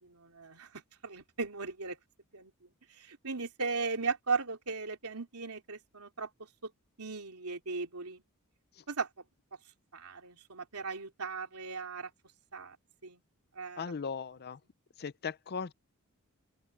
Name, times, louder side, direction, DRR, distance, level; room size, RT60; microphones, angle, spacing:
voice 1, 0.0-2.0 2.3-2.5 2.9-6.3 6.6-6.7 7.0-8.2 8.9-9.1 9.9-12.1 12.5-12.8 13.0-13.2 13.5-13.8, right 4 dB, 80° right, 3.1 m, -37 dB
voice 2, 13.8-14.6 15.0-15.7, left 5 dB, 45° left, 0.5 m, -38 dB
open air
head